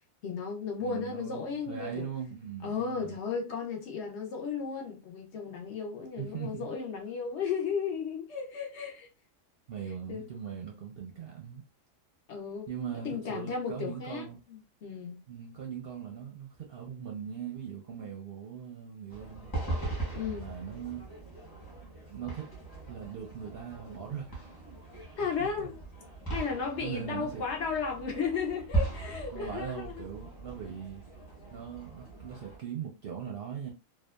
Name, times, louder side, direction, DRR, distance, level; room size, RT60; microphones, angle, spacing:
voice 1, 0.2-2.1 2.6-9.1 10.1-10.2 12.3-12.7 13.0-15.2 20.1-20.5 25.2-25.8 26.3-30.1, left 6 dB, 65° left, 0.9 m, -34 dB
voice 2, 0.8-3.2 6.2-6.7 9.7-11.6 12.7-14.4 15.3-19.5 20.3-21.1 22.1-22.5 22.9-24.4 25.2-25.7 26.8-27.4 29.3-31.0 31.5-33.7, right 8 dB, 60° right, 0.6 m, -40 dB
sound 1, 19.1-32.6, right 3 dB, 20° left, 0.8 m, -39 dB
2.7 x 2.2 x 2.2 m
omnidirectional pair, 1.4 m